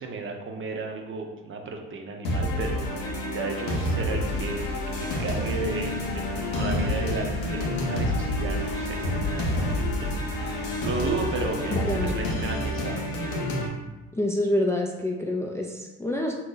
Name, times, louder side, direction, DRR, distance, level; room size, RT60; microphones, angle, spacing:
voice 1, 0.0-13.1, right 3 dB, 40° right, 3 dB, 0.6 m, -34 dB
sound 1, 2.2-13.7, left 1 dB, 85° left, 0.6 m, -28 dB
sound 2, 4.2-12.9, left 3 dB, 35° left, 0.9 m, -38 dB
voice 2, 11.7-12.1 14.1-16.4, left 1 dB, 10° left, 0 dB, 0.3 m, -27 dB
2.8 x 2.2 x 3.7 m, 1.1 s
hypercardioid pair, 60°, 31 cm